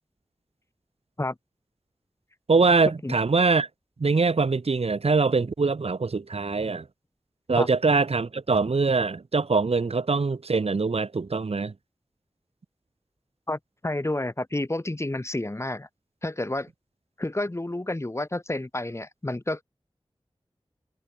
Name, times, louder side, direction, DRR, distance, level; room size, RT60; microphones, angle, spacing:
voice 1, 2.5-3.7 4.0-6.8 7.5-11.7, right 4 dB, 85° right, 2.6 m, -23 dB
voice 2, 13.5-15.9 16.2-16.7 17.2-19.6, left 1 dB, 25° left, 2.1 m, -30 dB
wide cardioid pair, 70°, 10 cm